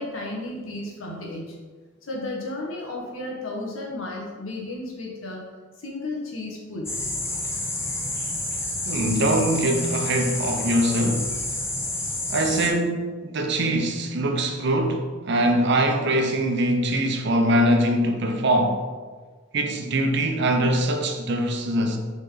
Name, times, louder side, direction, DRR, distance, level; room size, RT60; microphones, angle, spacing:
voice 1, 0.0-1.6 2.1-5.4 5.8-6.9, left 2 dB, 90° left, 1.5 m, -33 dB
sound 1, 6.9-12.7, left 2 dB, 15° left, 0.8 m, -29 dB
voice 2, 8.8-11.3 12.3-18.8 19.5-22.0, right 1 dB, 60° right, 0.8 m, -23 dB
7.0 x 4.1 x 3.9 m
head